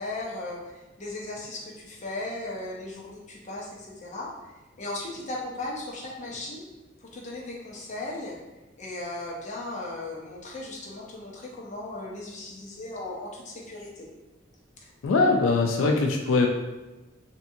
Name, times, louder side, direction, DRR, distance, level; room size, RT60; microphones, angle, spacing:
voice 1, 0.0-4.3 4.8-6.6 7.0-8.4 8.8-14.1 14.8-14.9, left 2 dB, 40° left, -3 dB, 0.6 m, -37 dB
voice 2, 15.0-16.5, left 3 dB, 90° left, 2 dB, 0.3 m, -22 dB
2.7 x 2.5 x 2.6 m, 1.1 s
head